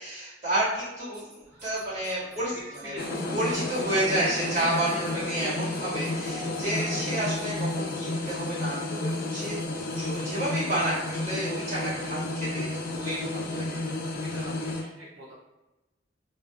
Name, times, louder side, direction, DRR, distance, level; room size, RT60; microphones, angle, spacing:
voice 1, 0.0-2.6 2.8-2.9 3.3-9.6 9.9-13.8, right 1 dB, 40° right, -11 dB, 1.5 m, -30 dB
sound 1, 1.1-2.4 2.7-3.2 3.5-3.8 4.5-5.1 5.7-6.8 7.4-7.9 8.3-8.5 9.1-9.2 9.4-10.2, right 2 dB, 60° right, 1.1 m, -52 dB
sound 2, 1.4-10.9, equal, 10° right, 0.7 m, -47 dB
voice 2, 2.5-3.3 6.1-6.5 11.9-12.3 14.2-15.3, equal, 80° right, -7 dB, 0.6 m, -45 dB
sound 3, 3.0-14.8, left 2 dB, 50° left, 0.4 m, -31 dB
2.4 x 2.2 x 2.3 m, 1.0 s
head